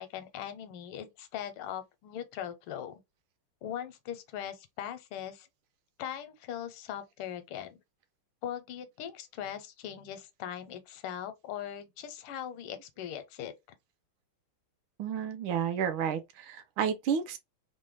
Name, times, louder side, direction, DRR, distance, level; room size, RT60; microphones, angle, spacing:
voice 1, 0.0-2.9 3.6-5.5 6.0-7.8 8.4-13.5, left 10 dB, 85° left, 1.5 m, -40 dB
voice 2, 15.0-17.4, right 7 dB, 75° right, 1.3 m, -31 dB
3.6 x 2.1 x 3.1 m
omnidirectional pair, 2.4 m